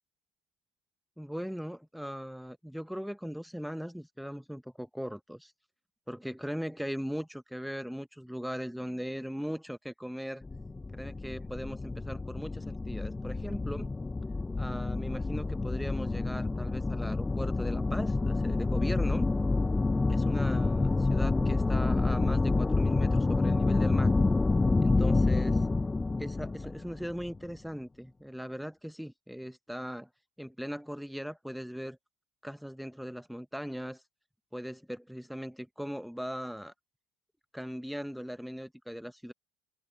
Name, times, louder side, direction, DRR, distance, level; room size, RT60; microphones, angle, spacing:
voice 1, 1.2-5.5 6.1-10.4 10.9-13.9 14.6-19.3 20.1-24.1 24.8-25.7 26.2-30.1 30.4-32.0 32.4-34.0 34.5-36.7 37.5-39.3, equal, ahead, 0.8 m, -39 dB
sound 1, 10.4-27.4, left 3 dB, 15° left, 0.4 m, -28 dB
hypercardioid pair, 75°, 0 cm